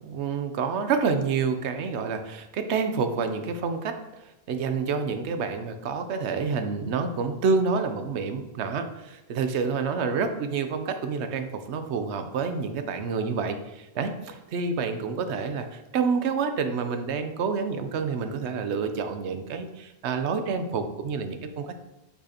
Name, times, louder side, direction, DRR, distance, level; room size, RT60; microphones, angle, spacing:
voice 1, 0.0-4.0 4.5-21.7, right 5 dB, 85° right, 8 dB, 0.9 m, -28 dB
6.2 x 5.7 x 2.8 m, 0.97 s
omnidirectional pair, 1.1 m